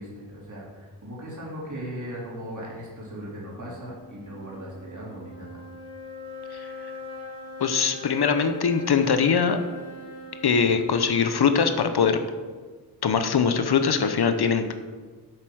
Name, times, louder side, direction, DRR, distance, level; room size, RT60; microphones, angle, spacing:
voice 1, 0.0-5.6, equal, 50° right, -5 dB, 3.7 m, -38 dB
sound 1, 3.4-12.9, left 2 dB, 10° left, 3.6 m, -42 dB
voice 2, 7.6-9.6 10.4-12.2 13.0-14.7, left 6 dB, 70° left, 8 dB, 0.9 m, -22 dB
7.9 x 7.8 x 6.3 m, 1.4 s
wide cardioid pair, 95°, 40 cm